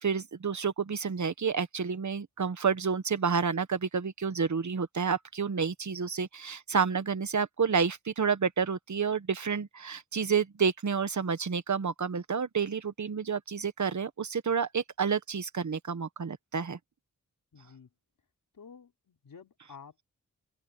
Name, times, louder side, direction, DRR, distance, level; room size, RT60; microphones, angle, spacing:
voice 1, 0.0-16.8, right 6 dB, 60° right, 1.4 m, -29 dB
voice 2, 17.5-17.9 18.5-19.9, left 6 dB, 85° left, 5.0 m, -51 dB
open air
cardioid pair, 50°, 33 cm